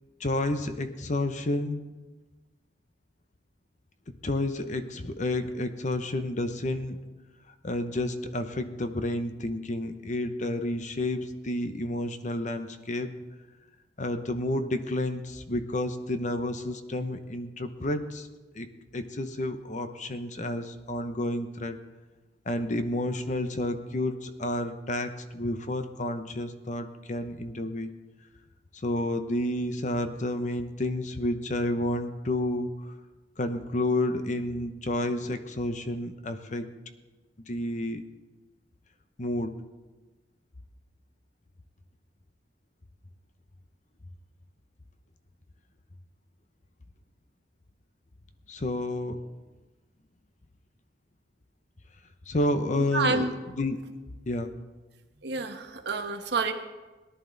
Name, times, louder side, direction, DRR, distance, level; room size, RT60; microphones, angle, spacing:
voice 1, 0.2-2.0 4.2-7.0 7.6-13.1 14.0-18.3 18.5-18.7 18.9-21.8 22.5-27.9 28.7-32.9 33.4-36.7 37.5-38.1 39.2-39.6 48.5-49.2 52.3-53.3 53.6-53.8 54.3-54.6, left 1 dB, 40° left, 9 dB, 0.8 m, -30 dB
voice 2, 52.9-53.3 55.2-56.5, right 3 dB, 65° right, 6 dB, 1.1 m, -28 dB
18.5 x 11.0 x 3.9 m, 1.2 s
head